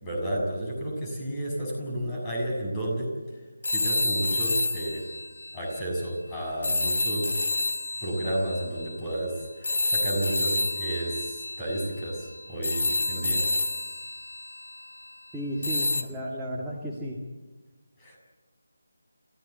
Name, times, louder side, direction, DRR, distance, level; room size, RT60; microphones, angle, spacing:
voice 1, 0.0-3.1 3.7-5.0 5.5-7.5 8.0-13.4 18.0-18.2, right 1 dB, 15° left, -1 dB, 6.6 m, -31 dB
sound 1, 3.6-6.1 6.6-15.1 15.6-16.0, left 2 dB, 65° left, 2.5 m, -29 dB
voice 2, 15.3-17.2, equal, 5° right, -5 dB, 2.3 m, -33 dB
27.0 x 15.5 x 8.3 m, 1.3 s
figure-of-eight pair, 155°, 0 cm